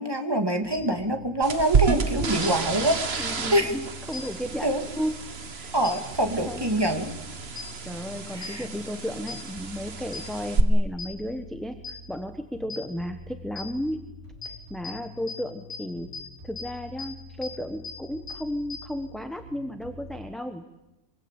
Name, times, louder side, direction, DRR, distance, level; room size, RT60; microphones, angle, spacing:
voice 1, 0.0-3.7 4.6-4.8 5.7-7.1 8.3-8.6, right 1 dB, 15° right, 5 dB, 2.3 m, -25 dB
sound 1, 0.6-20.3, left 1 dB, 70° right, 6.1 m, -47 dB
sound 2, 0.7-0.8 2.4-2.5 4.1-4.2 5.8-5.9 7.6-7.7 8.4-8.5 9.3-9.4 10.1-10.2 11.0-11.1 11.8-11.9 12.7-12.8 13.6-13.7 14.4-14.5 14.8-14.9 15.3-15.4 15.7-15.8 16.1-16.2 16.6-16.7 17.0-17.1 17.4-17.5 17.8-17.9 18.3-18.4 18.7-18.8, left 5 dB, 25° left, 5.3 m, -36 dB
sound 3, 1.4-10.6, right 6 dB, 45° right, 1.6 m, -30 dB
voice 2, 3.2-5.2 5.5-5.7 6.4-6.6 7.9-14.0 14.4-16.1 16.4-20.7, equal, ahead, 6 dB, 1.1 m, -34 dB
24.0 x 23.5 x 8.3 m, 0.98 s
omnidirectional pair, 1.5 m